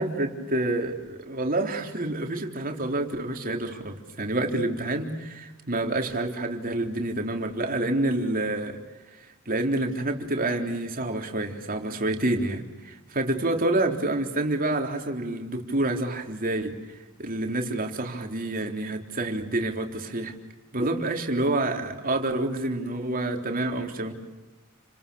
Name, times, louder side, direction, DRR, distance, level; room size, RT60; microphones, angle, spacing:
voice 1, 0.0-8.8 9.5-16.7 17.2-20.3 20.7-24.1, right 2 dB, 40° right, 4 dB, 3.7 m, -28 dB
30.0 x 27.5 x 7.0 m, 1.1 s
head